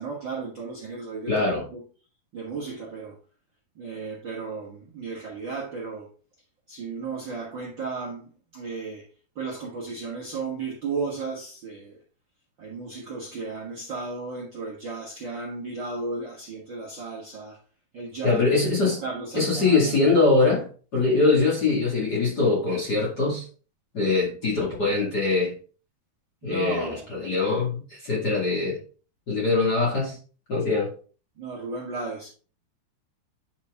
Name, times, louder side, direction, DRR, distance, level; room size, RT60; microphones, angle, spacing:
voice 1, 0.0-1.8 2.3-3.2 3.7-6.1 6.7-9.1 9.3-12.0 12.6-17.6 17.9-20.0 26.4-27.2 31.4-32.3, right 4 dB, 90° right, 1.0 m, -34 dB
voice 2, 1.3-1.6 18.2-19.0 19.3-20.7 20.9-23.4 23.9-25.5 26.4-28.8 29.3-30.2 30.5-30.9, left 3 dB, 35° left, 1.7 m, -22 dB
9.5 x 4.4 x 3.7 m
omnidirectional pair, 4.7 m